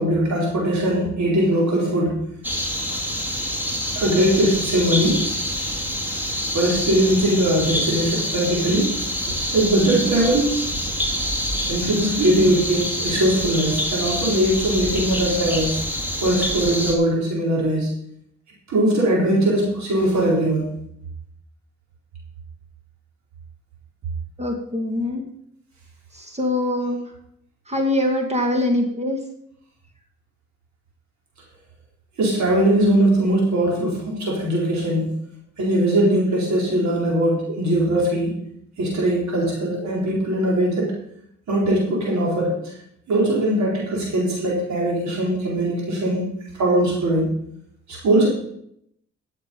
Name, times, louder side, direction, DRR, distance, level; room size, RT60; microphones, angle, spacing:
voice 1, 0.0-2.2 3.9-5.3 6.5-10.5 11.7-15.8 16.2-17.9 18.7-20.7 32.2-35.1 35.6-38.4 38.8-41.0 41.5-42.7 43.1-47.3 47.9-48.3, right 1 dB, 75° right, -3 dB, 4.3 m, -20 dB
sound 1, 2.4-16.9, equal, 5° right, 2.6 m, -26 dB
voice 2, 24.4-25.3 26.1-27.1 27.7-29.2, left 1 dB, 20° right, 3 dB, 2.3 m, -23 dB
13.0 x 7.5 x 5.4 m, 0.71 s
cardioid pair, 80°, 29 cm